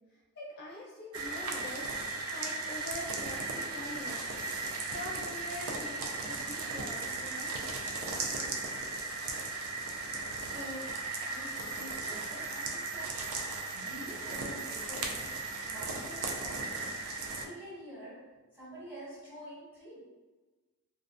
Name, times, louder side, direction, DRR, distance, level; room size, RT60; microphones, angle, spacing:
voice 1, 0.3-1.8 2.3-4.3 4.5-4.6 4.9-7.6, left 1 dB, 45° left, -5 dB, 0.5 m, -44 dB
sound 1, 1.1-17.4, right 3 dB, 65° right, 0.4 m, -36 dB
voice 2, 10.2-17.0 17.4-20.0, equal, 10° right, -10 dB, 1.2 m, -47 dB
2.3 x 2.2 x 2.5 m, 1.2 s
head